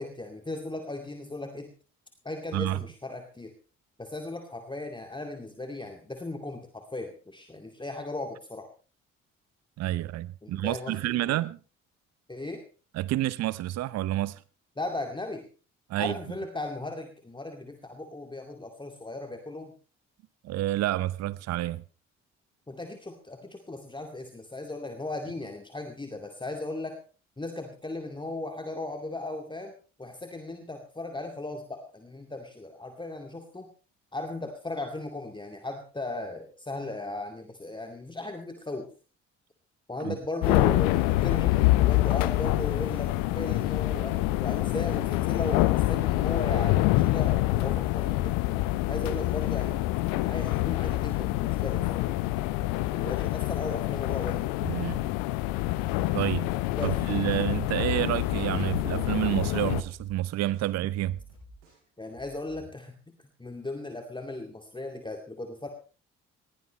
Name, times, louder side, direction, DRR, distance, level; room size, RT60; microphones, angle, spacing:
voice 1, 0.0-1.7 2.2-3.5 4.0-8.7 10.4-11.4 12.3-12.6 14.8-15.5 16.0-19.7 22.7-27.0 27.4-29.7 30.0-33.7 34.1-38.9 39.9-48.4 48.9-49.8 50.2-52.1 52.9-54.5 56.8-57.0 62.0-62.9 63.4-65.7, left 2 dB, 10° left, 2.3 m, -37 dB
voice 2, 9.8-11.6 12.9-14.4 15.9-16.1 20.4-21.8 40.0-40.2 54.6-55.0 56.1-56.5 56.8-61.2, right 15 dB, 45° right, 0.7 m, -29 dB
sound 1, 40.4-59.8, left 17 dB, 60° left, 0.9 m, -26 dB
sound 2, 58.1-62.7, equal, 70° right, 6.8 m, -51 dB
20.0 x 16.5 x 3.2 m
figure-of-eight pair, 45°, 37 cm